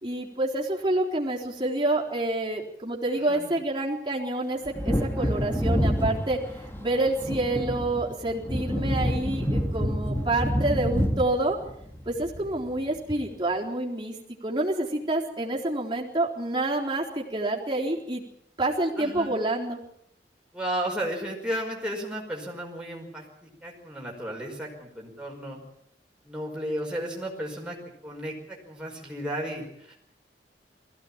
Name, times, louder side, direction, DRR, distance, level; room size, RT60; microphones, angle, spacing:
voice 1, 0.0-11.6 12.1-14.2 14.4-18.2 18.6-19.8, right 2 dB, 25° right, -2 dB, 3.9 m, -28 dB
Wind / Thunder, 4.6-12.9 13.2-13.3, equal, 15° left, 2.0 m, -28 dB
voice 2, 19.0-19.4 20.5-25.6 26.2-27.8 28.0-29.9, right 1 dB, 5° right, -2 dB, 5.3 m, -34 dB
21.0 x 16.0 x 8.8 m, 0.74 s
head